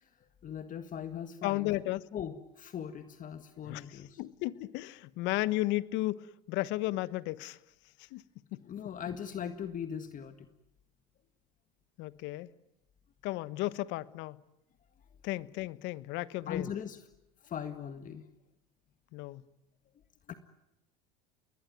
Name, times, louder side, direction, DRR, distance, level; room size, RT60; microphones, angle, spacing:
voice 1, 0.4-1.7 2.1-4.2 8.6-10.5 16.5-17.0 17.4-18.2 20.3-20.4, left 8 dB, 40° left, 1.7 m, -39 dB
voice 2, 1.4-2.0 3.7-7.6 8.1-8.2 8.5-8.6 12.0-12.5 13.2-14.4 15.2-16.7 19.1-19.4, left 17 dB, 65° left, 1.2 m, -34 dB
28.5 x 21.5 x 9.4 m
hypercardioid pair, 85°, 20 cm